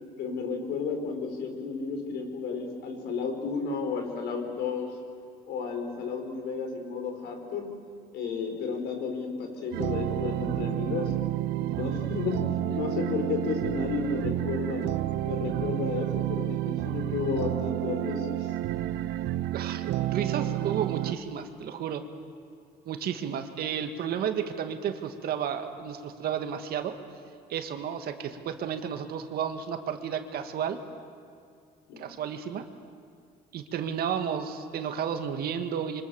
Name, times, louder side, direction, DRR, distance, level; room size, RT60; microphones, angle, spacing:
voice 1, 0.2-4.9 5.5-7.7 8.1-11.1 11.6-12.4 12.7-14.8 15.2-18.5 31.9-32.0, left 5 dB, 80° left, 4 dB, 4.9 m, -32 dB
sound 1, 9.7-21.1, right 14 dB, 85° right, 0.9 m, -30 dB
voice 2, 19.5-22.0 22.9-26.9 27.5-30.8 32.0-32.6 33.5-36.0, right 8 dB, 65° right, 7 dB, 2.0 m, -32 dB
28.0 x 25.0 x 7.1 m, 2.2 s
cardioid pair, 110°, 17 cm